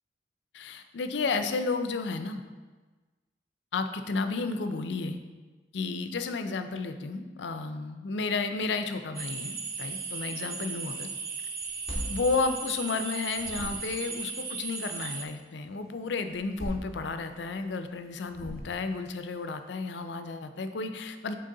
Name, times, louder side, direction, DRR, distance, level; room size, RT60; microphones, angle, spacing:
voice 1, 0.5-2.4 3.7-5.2 5.7-11.1 12.1-21.3, left 4 dB, 80° left, 8 dB, 0.5 m, -32 dB
sound 1, 9.1-15.2, right 5 dB, 55° right, 0.6 m, -36 dB
sound 2, 11.6-13.1 13.3-14.1 16.3-17.5 18.3-19.1, equal, ahead, 1.9 m, -39 dB
6.6 x 4.1 x 3.7 m, 1.3 s
head